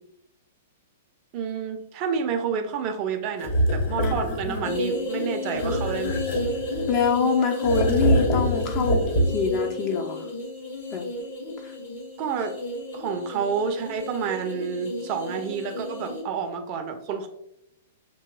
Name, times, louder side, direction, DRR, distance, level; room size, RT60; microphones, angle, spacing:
voice 1, 1.3-6.3 12.2-12.6 12.9-17.3, right 6 dB, 35° right, 5 dB, 0.6 m, -29 dB
sound 1, 3.4-4.7 5.5-7.1 7.6-9.6, equal, 50° left, 1.2 m, -25 dB
sound 2, 4.6-16.2, left 2 dB, 65° left, 1.5 m, -32 dB
voice 2, 6.9-9.0 9.3-10.3 10.9-11.0 11.6-11.7, left 5 dB, 30° left, 3 dB, 0.6 m, -24 dB
6.8 x 2.9 x 2.2 m, 0.79 s
figure-of-eight pair, 105°, 0 cm